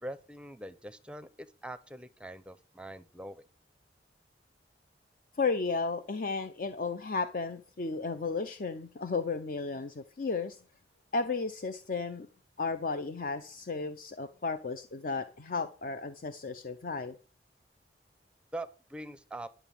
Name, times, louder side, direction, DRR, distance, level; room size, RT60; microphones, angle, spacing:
voice 1, 0.0-3.4 18.5-19.5, right 1 dB, 5° right, 0.6 m, -43 dB
voice 2, 5.4-10.6 11.1-12.3 12.6-17.1, left 4 dB, 50° left, 0.6 m, -34 dB
11.0 x 5.8 x 8.6 m
head